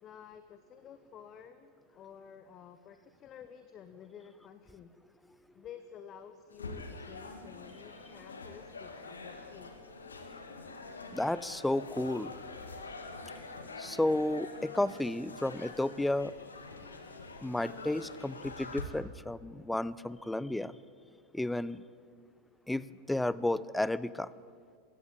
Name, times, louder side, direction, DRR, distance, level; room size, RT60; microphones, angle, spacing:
voice 1, 0.0-4.9 5.5-9.7, left 8 dB, 30° left, 10 dB, 1.0 m, -51 dB
sound 1, 6.5-18.8, left 3 dB, 75° left, 2.2 m, -45 dB
voice 2, 11.1-12.3 13.8-16.3 17.4-20.8 21.3-21.8 22.7-24.3, left 1 dB, 5° left, 19 dB, 0.6 m, -32 dB
22.0 x 16.5 x 8.8 m, 2.1 s
figure-of-eight pair, 90°, 0 cm